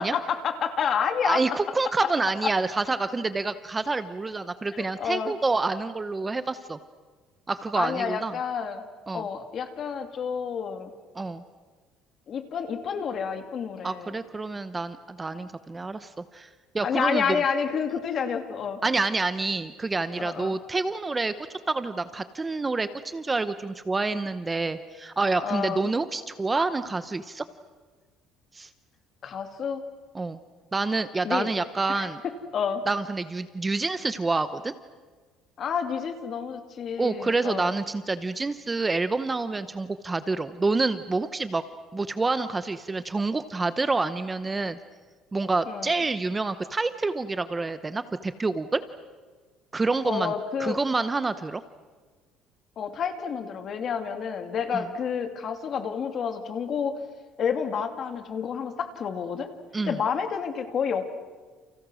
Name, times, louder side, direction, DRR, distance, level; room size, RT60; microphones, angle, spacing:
voice 1, 0.0-1.4 4.7-5.3 7.8-8.8 9.1-10.9 12.3-14.2 16.8-18.8 20.2-20.5 25.4-25.9 29.2-29.8 31.2-31.5 31.9-32.1 32.5-32.8 35.6-37.7 45.7-45.9 50.1-50.8 52.8-56.9 57.4-59.5 59.9-61.1, left 7 dB, 40° left, 7 dB, 2.7 m, -29 dB
voice 2, 1.2-6.8 7.5-8.3 9.1-9.3 11.1-11.4 13.8-16.5 16.7-17.4 18.8-21.3 21.7-27.4 28.5-28.7 30.1-30.4 30.7-32.2 32.9-34.7 37.0-41.6 41.9-44.8 45.3-48.8 49.7-50.3 50.6-51.6 54.7-54.8 59.7-60.0, right 3 dB, 15° right, 12 dB, 0.8 m, -27 dB
30.0 x 30.0 x 6.3 m, 1.5 s
cardioid pair, 150°, 0 cm